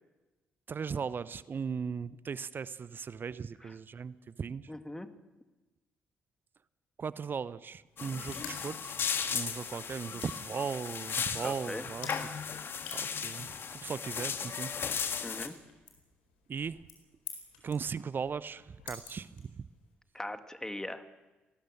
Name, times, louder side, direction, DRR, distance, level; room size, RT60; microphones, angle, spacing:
voice 1, 0.7-4.7 7.0-9.0 9.3-12.1 12.9-14.8 16.5-16.8 17.6-19.6, right 6 dB, 40° right, 18 dB, 0.8 m, -38 dB
voice 2, 4.7-5.1 8.0-8.1 11.4-11.8 15.2-15.6 20.1-21.0, left 1 dB, 10° left, 8 dB, 2.1 m, -40 dB
sound 1, 7.8-19.9, left 6 dB, 75° left, 4.4 m, -52 dB
sound 2, 8.0-15.5, left 6 dB, 45° left, 1.7 m, -36 dB
28.0 x 19.5 x 6.4 m, 1.1 s
figure-of-eight pair, 40°, 5 cm